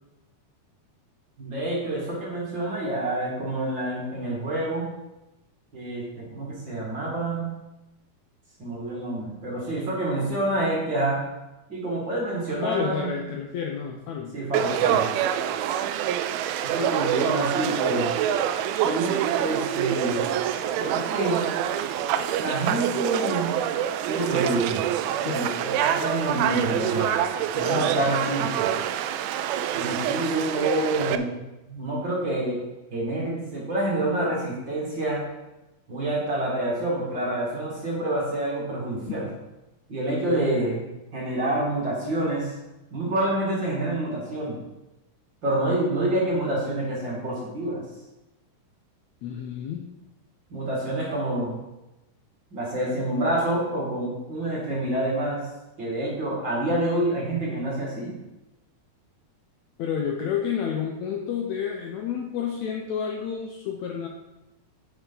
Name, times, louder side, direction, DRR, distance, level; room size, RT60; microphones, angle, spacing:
voice 1, 1.4-4.9 5.7-7.5 8.6-11.2 11.7-13.1 14.3-15.1 16.6-18.1 18.8-20.3 20.8-21.5 22.4-23.6 24.1-24.8 25.2-27.1 27.6-28.7 29.7-31.4 31.6-32.6 32.9-35.2 35.9-39.3 39.9-42.5 42.9-44.6 45.4-47.8 50.5-51.6 52.5-55.4 55.8-58.1, right 1 dB, 35° right, -4 dB, 2.4 m, -27 dB
voice 2, 12.6-14.4 25.2-25.4 27.5-27.8 39.1-39.3 40.2-40.5 49.2-49.9 59.8-64.1, left 7 dB, 90° left, 1 dB, 1.6 m, -30 dB
Conversation / Crowd, 14.5-31.2, right 10 dB, 90° right, 2.4 m, -26 dB
10.0 x 6.9 x 3.9 m, 0.98 s
omnidirectional pair, 4.2 m